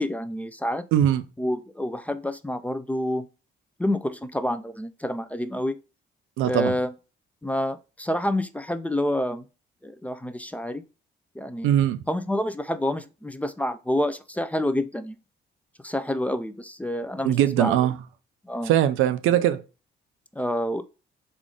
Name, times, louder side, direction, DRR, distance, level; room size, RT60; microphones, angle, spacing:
voice 1, 0.0-0.8 1.4-3.3 3.8-5.8 6.4-6.9 7.4-9.4 9.8-10.8 11.4-11.7 12.1-15.2 15.8-17.7 18.4-18.7 20.4-20.8, left 1 dB, 5° left, 0.3 m, -28 dB
voice 2, 0.9-1.2 6.4-6.8 11.6-12.0 17.2-18.0 18.6-19.6, right 11 dB, 90° right, 0.4 m, -21 dB
3.6 x 2.4 x 3.7 m
cardioid pair, 90°, 20 cm